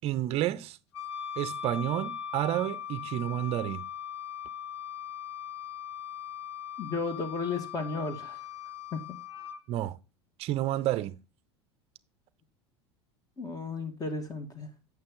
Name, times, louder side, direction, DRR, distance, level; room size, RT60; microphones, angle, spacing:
voice 1, 0.0-0.8 1.4-3.8 9.7-10.0 10.4-11.2, right 13 dB, 45° right, 0.6 m, -30 dB
Wind instrument woodwind instrument, 0.9-9.6, left 8 dB, 75° left, 1.0 m, -40 dB
voice 2, 6.8-8.4 8.9-9.0 13.4-14.7, left 4 dB, 25° left, 2.1 m, -34 dB
8.7 x 6.4 x 3.8 m
hypercardioid pair, 80°, 14 cm